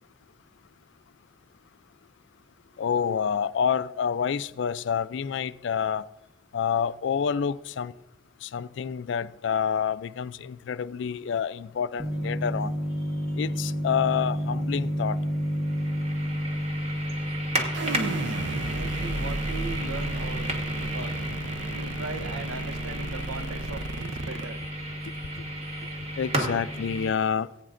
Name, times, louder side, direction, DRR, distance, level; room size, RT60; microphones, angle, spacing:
voice 1, 2.8-6.0 6.5-7.9 8.4-12.7 13.4-15.2 26.2-27.5, left 7 dB, 60° left, 0.3 m, -28 dB
sound 1, 12.0-27.1, equal, 30° right, 1.4 m, -31 dB
sound 2, 17.2-17.4 17.7-18.0 18.3-18.6 18.9-19.2 19.5-19.8 23.2-23.5 23.8-24.1 24.4-24.7 25.0-25.3 25.6-25.9, equal, 10° left, 3.6 m, -53 dB
sound 3, 17.7-24.4, right 2 dB, 60° right, 0.6 m, -34 dB
voice 2, 17.8-20.5 20.9-21.2 21.7-24.6, right 3 dB, 85° right, 0.9 m, -39 dB
18.5 x 8.9 x 2.5 m
head